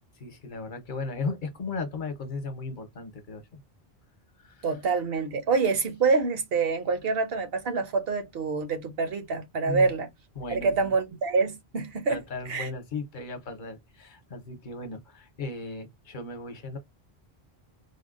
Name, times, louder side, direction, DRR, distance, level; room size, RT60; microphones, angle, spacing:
voice 1, 0.2-3.4 4.4-4.7 9.7-9.9 10.4-10.9 12.1-16.8, left 3 dB, 50° left, 0.9 m, -36 dB
voice 2, 4.6-10.1 10.5-12.2 12.5-12.7, right 4 dB, 65° right, 1.0 m, -26 dB
3.5 x 2.2 x 2.4 m
omnidirectional pair, 1.1 m